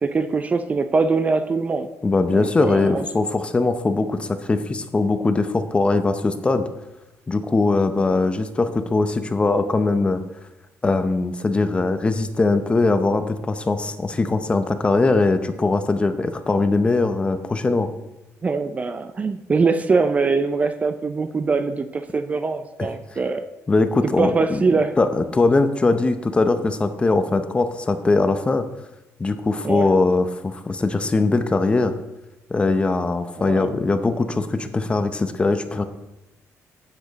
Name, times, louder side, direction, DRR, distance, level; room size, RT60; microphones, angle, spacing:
voice 1, 0.0-1.9 2.3-3.0 18.4-23.4 24.2-24.9 29.6-29.9 33.4-33.7, right 4 dB, 25° right, 10 dB, 0.4 m, -22 dB
voice 2, 2.0-6.7 7.3-10.2 10.8-17.9 22.8-22.9 23.7-24.6 25.0-28.6 29.2-31.9 32.5-35.8, left 3 dB, 20° left, 9 dB, 0.7 m, -21 dB
9.9 x 8.8 x 4.1 m, 0.97 s
cardioid pair, 145°, 6 cm